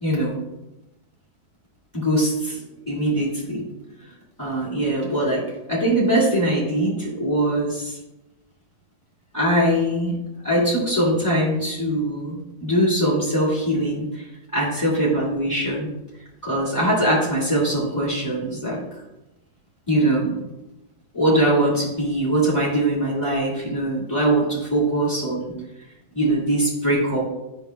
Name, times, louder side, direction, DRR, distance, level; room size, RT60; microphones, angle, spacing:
voice 1, 0.0-0.4 1.9-3.6 4.4-8.0 9.3-10.2 10.4-14.3 14.5-15.9 16.4-18.8 19.9-20.4 21.1-25.5 26.1-27.3, right 1 dB, 10° left, -8 dB, 1.8 m, -22 dB
11.0 x 6.0 x 2.3 m, 0.97 s
omnidirectional pair, 2.0 m